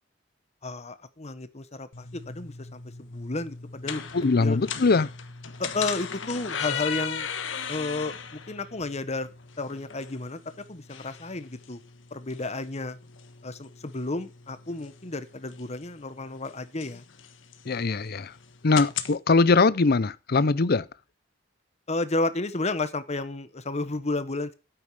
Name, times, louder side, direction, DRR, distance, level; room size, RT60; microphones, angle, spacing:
voice 1, 0.6-4.0 4.4-4.6 5.6-7.3 7.7-9.3 9.6-11.8 12.1-13.0 13.4-17.0 21.9-24.5, left 2 dB, 35° left, 1.2 m, -32 dB
sound 1, 1.9-19.2, left 7 dB, 85° left, 1.3 m, -38 dB
voice 2, 4.1-5.1 17.7-18.3 18.6-20.9, left 3 dB, 55° left, 0.6 m, -22 dB
12.5 x 9.0 x 4.9 m
head